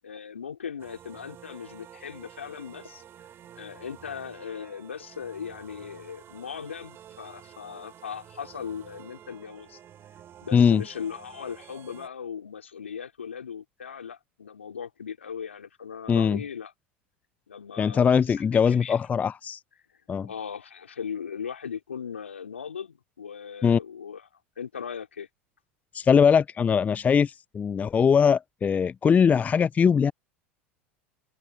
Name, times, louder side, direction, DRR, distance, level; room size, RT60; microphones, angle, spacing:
voice 1, 0.0-3.0 3.5-9.8 10.4-16.7 17.5-19.0 20.2-24.3 24.6-25.3, left 7 dB, 85° left, 2.9 m, -38 dB
sound 1, 0.8-12.1, right 10 dB, 40° right, 3.0 m, -50 dB
voice 2, 10.5-10.8 16.1-16.4 17.8-19.6 20.1-20.3 23.6-23.8 25.9-30.1, left 6 dB, 25° left, 0.4 m, -21 dB
hypercardioid pair, 80°, 7 cm